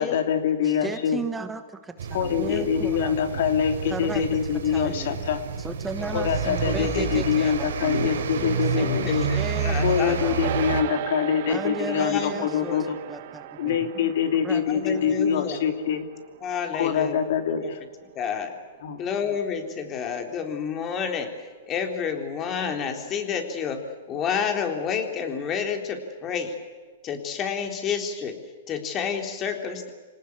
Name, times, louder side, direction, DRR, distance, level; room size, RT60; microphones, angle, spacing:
voice 1, 0.0-1.2 2.1-5.4 6.1-9.3 9.8-13.0 13.6-16.1 16.8-17.8 18.8-19.0, left 8 dB, 65° left, 7 dB, 2.9 m, -25 dB
voice 2, 0.6-3.4 3.9-5.2 5.6-8.2 8.6-10.4 11.5-12.7 13.1-13.8 14.0-14.1 14.4-14.6 14.9-15.1, right 4 dB, 10° right, 9 dB, 1.3 m, -35 dB
sound 1, 2.0-10.8, right 5 dB, 75° right, 3.7 m, -29 dB
voice 3, 4.7-5.1 5.9-6.1 6.8-7.2 8.7-10.7 12.0-12.8 14.7-15.6 16.4-17.2 17.6-17.7 18.1-18.5 19.0-26.5 27.0-28.4 28.7-29.9, left 7 dB, 30° left, 5 dB, 3.8 m, -30 dB
sound 2, 10.4-19.9, right 13 dB, 55° right, 1.2 m, -38 dB
27.0 x 18.5 x 8.4 m, 1.5 s
hypercardioid pair, 130°, 0 cm